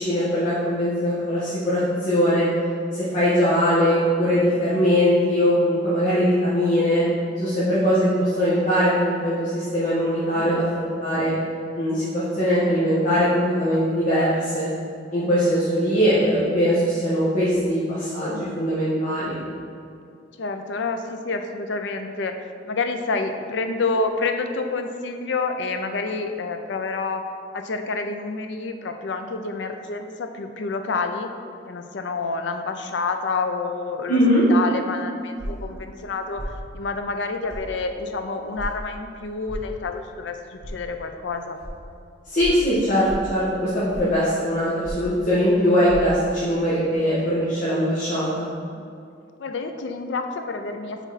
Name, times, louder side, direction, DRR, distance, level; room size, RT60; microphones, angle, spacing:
voice 1, 0.0-2.5 2.9-7.0 7.4-11.3 11.7-14.7 15.1-19.4 34.1-34.4 42.3-48.5, equal, 45° left, -11 dB, 1.2 m, -21 dB
voice 2, 18.2-18.6 20.4-22.4 22.6-27.2 27.5-31.3 31.7-34.2 34.5-41.6 48.8-48.9 49.4-51.1, left 3 dB, 70° left, 6 dB, 0.5 m, -28 dB
sound 1, 35.4-35.7 36.4-36.6 37.5-37.7 38.6-38.7 39.5-39.7 40.6-40.7 41.6-41.7 42.4-42.6 43.0-43.3 43.9-44.2 44.8-45.1 45.9-46.0, equal, 80° right, 1.4 m, -33 dB
6.2 x 4.0 x 4.0 m, 2.5 s
head